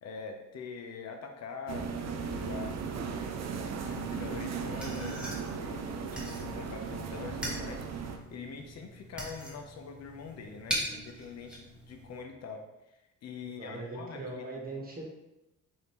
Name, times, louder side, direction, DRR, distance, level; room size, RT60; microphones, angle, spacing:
voice 1, 0.0-3.4 3.9-14.6, left 5 dB, 60° left, 3 dB, 0.6 m, -44 dB
sound 1, 1.7-8.2, right 5 dB, 60° right, 0.6 m, -36 dB
sound 2, 3.9-12.2, equal, 5° right, 1.1 m, -42 dB
voice 2, 13.4-15.0, right 2 dB, 30° right, -2 dB, 1.3 m, -40 dB
5.0 x 2.7 x 3.0 m, 0.94 s
cardioid pair, 90°, 30 cm